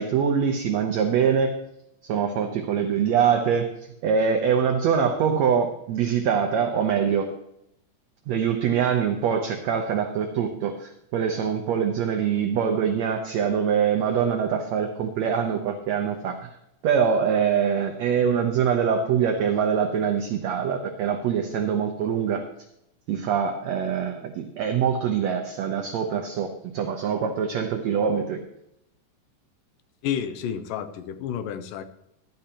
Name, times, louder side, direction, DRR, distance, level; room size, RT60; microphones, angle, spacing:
voice 1, 0.0-1.6 2.1-3.7 4.0-7.3 8.3-16.5 16.8-22.5 23.1-28.4, right 7 dB, 70° right, 4 dB, 1.8 m, -24 dB
voice 2, 30.0-31.8, left 9 dB, 85° left, 9 dB, 2.5 m, -30 dB
13.5 x 12.0 x 2.9 m, 0.80 s
omnidirectional pair, 3.8 m